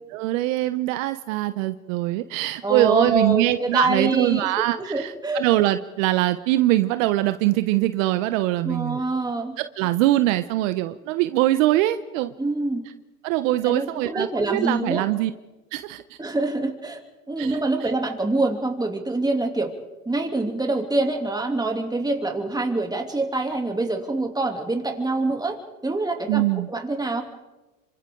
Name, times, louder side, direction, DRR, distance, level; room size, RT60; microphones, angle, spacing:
voice 1, 0.1-9.1 9.6-12.3 12.8-12.9 13.2-15.3 15.7-16.0 17.4-17.9 26.3-26.7, right 16 dB, 65° right, 11 dB, 1.0 m, -23 dB
voice 2, 2.6-5.5 8.6-9.6 12.4-12.8 13.6-15.1 16.2-17.0 17.3-19.7 20.1-27.2, right 2 dB, 10° right, 3 dB, 3.1 m, -25 dB
28.0 x 25.0 x 3.9 m, 1.1 s
hypercardioid pair, 90°, 42 cm